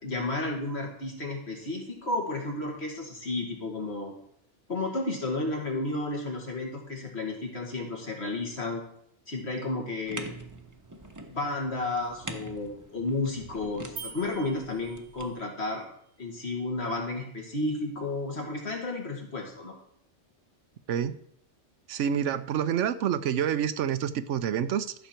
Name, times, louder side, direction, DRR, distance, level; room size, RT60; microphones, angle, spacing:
voice 1, 0.0-4.1 4.7-8.8 9.3-10.3 11.3-15.9 16.2-19.8, left 2 dB, 65° left, 1 dB, 2.3 m, -32 dB
sound 1, 10.1-15.3, right 2 dB, 20° right, 0.8 m, -44 dB
sound 2, 14.0-15.5, right 5 dB, 65° right, 0.9 m, -44 dB
voice 2, 21.9-24.9, right 9 dB, 85° right, 13 dB, 1.0 m, -28 dB
13.5 x 6.5 x 4.4 m, 0.70 s
omnidirectional pair, 1.2 m